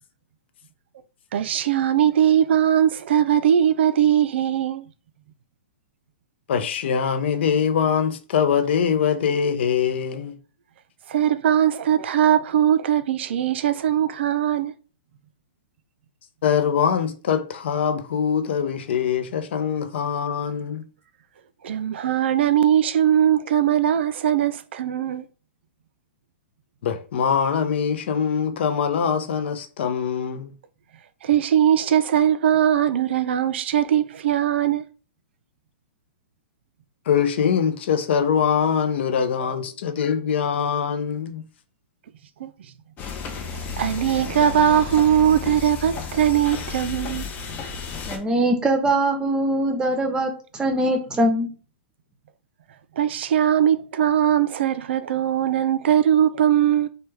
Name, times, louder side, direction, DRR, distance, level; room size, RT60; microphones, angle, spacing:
voice 1, 1.3-4.9 11.1-14.7 21.6-25.2 31.2-34.8 42.4-42.5 43.8-47.3 53.0-56.9, right 10 dB, 65° right, 0.4 m, -20 dB
voice 2, 6.5-10.4 16.4-20.8 26.8-30.5 37.1-41.4, left 7 dB, 65° left, 0.5 m, -23 dB
sound 1, 43.0-48.2, left 5 dB, 25° left, 0.6 m, -33 dB
voice 3, 48.1-51.5, right 1 dB, 10° right, 0.7 m, -22 dB
3.2 x 2.2 x 3.2 m
hypercardioid pair, 130°, 6 cm